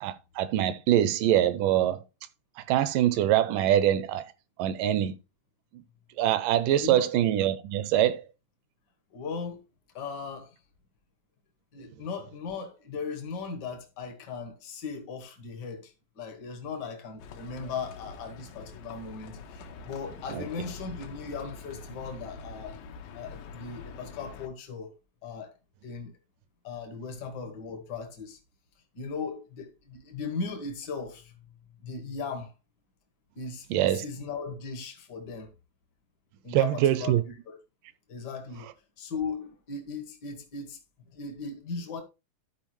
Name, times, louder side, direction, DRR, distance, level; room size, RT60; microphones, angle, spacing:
voice 1, 0.0-2.0 2.7-4.3 4.6-5.1 6.2-8.2 20.4-20.5 33.7-34.0 36.5-37.2, right 12 dB, 80° right, 2.0 m, -24 dB
voice 2, 9.1-9.6 9.9-10.5 11.7-22.8 23.1-25.5 25.8-26.1 26.6-28.4 28.9-31.4 31.8-32.5 33.3-35.5 36.4-37.6 38.1-38.7 39.0-40.8 41.1-42.0, left 5 dB, 70° left, 1.0 m, -38 dB
Livestock farm animals working animals, 17.2-24.5, left 4 dB, 90° left, 2.8 m, -45 dB
13.0 x 4.7 x 3.1 m
omnidirectional pair, 4.0 m